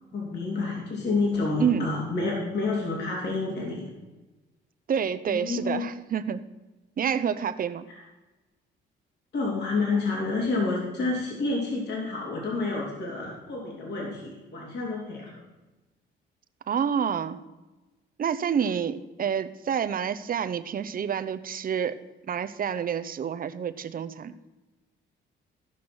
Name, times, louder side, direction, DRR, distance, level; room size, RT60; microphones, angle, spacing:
voice 1, 0.1-3.9 5.3-5.9 7.9-8.0 9.3-15.4, left 3 dB, 60° left, -3 dB, 3.2 m, -29 dB
voice 2, 4.9-6.4 7.0-7.9 16.7-17.4 18.2-22.0 22.3-24.3, right 7 dB, 45° right, 11 dB, 0.7 m, -28 dB
15.0 x 5.9 x 6.1 m, 1.1 s
cardioid pair, 90°, 20 cm